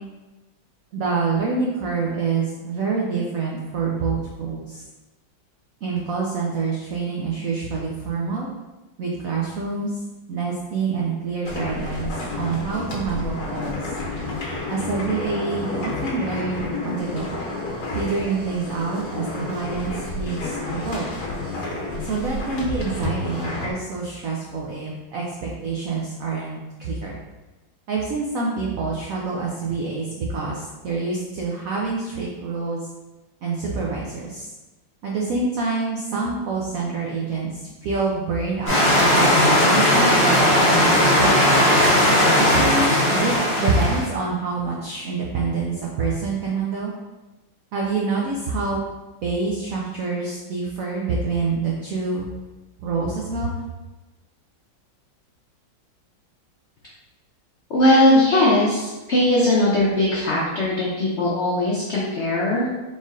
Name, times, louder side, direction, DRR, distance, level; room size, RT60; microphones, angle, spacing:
voice 1, 0.9-4.8 5.8-8.5 9.0-9.9 10.3-13.9 14.7-17.4 17.9-21.1 22.0-27.2 27.9-32.9 33.4-34.5 35.0-37.5 37.8-38.9 39.1-41.9 42.5-46.9 47.7-48.8 49.2-52.3 52.8-53.5, right 4 dB, 80° right, -3 dB, 0.7 m, -26 dB
sound 1, 11.5-23.7, left 2 dB, 60° left, 1.3 m, -30 dB
sound 2, 38.7-44.1, left 1 dB, 30° left, 1.2 m, -17 dB
voice 2, 57.7-62.7, left 1 dB, 85° left, -6 dB, 0.6 m, -19 dB
4.1 x 3.7 x 2.4 m, 1.1 s
omnidirectional pair, 2.1 m